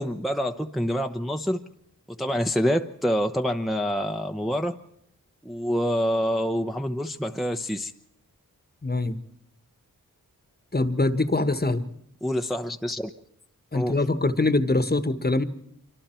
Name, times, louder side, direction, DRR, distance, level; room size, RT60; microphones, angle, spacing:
voice 1, 0.0-1.6 2.2-4.8 5.4-7.9 12.2-13.1 13.7-14.0, equal, ahead, 5 dB, 0.9 m, -26 dB
voice 2, 8.8-9.2 10.7-11.8 13.7-15.4, left 2 dB, 25° left, 11 dB, 1.3 m, -23 dB
26.0 x 24.5 x 4.5 m, 0.74 s
cardioid pair, 50°, 34 cm